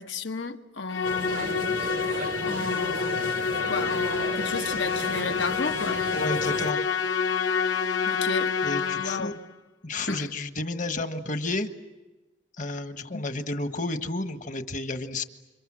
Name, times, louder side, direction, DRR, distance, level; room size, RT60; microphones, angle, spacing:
voice 1, 0.0-1.5 2.5-3.4 3.7-6.0 8.0-8.6 9.0-9.4 10.1-10.3 13.1-13.2, left 3 dB, 70° left, 1.5 m, -33 dB
Musical instrument, 0.9-9.4, left 6 dB, 90° left, 1.3 m, -28 dB
sound 1, 1.0-6.7, right 3 dB, 45° right, 0.9 m, -35 dB
voice 2, 6.1-6.8 8.6-9.3 9.8-11.7 12.6-15.2, left 2 dB, 40° left, 1.5 m, -31 dB
29.5 x 26.5 x 7.6 m
head